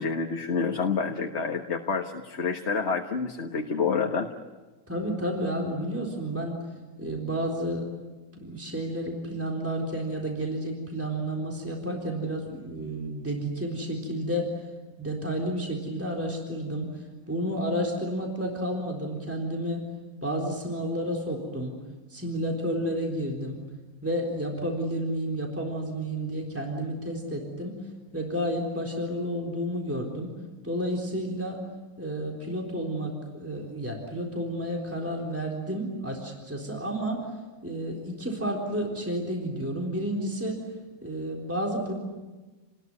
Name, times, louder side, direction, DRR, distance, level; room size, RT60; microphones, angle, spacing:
voice 1, 0.0-4.3, left 5 dB, 50° left, 3 dB, 1.7 m, -28 dB
voice 2, 4.9-6.7 7.0-7.9 8.3-14.6 15.0-19.9 20.2-21.8 22.1-23.6 24.0-27.8 28.1-30.3 30.6-31.6 32.0-37.3 37.6-40.6 41.0-41.9, equal, 10° right, -1 dB, 3.8 m, -31 dB
29.0 x 20.5 x 9.6 m, 1.2 s
omnidirectional pair, 1.5 m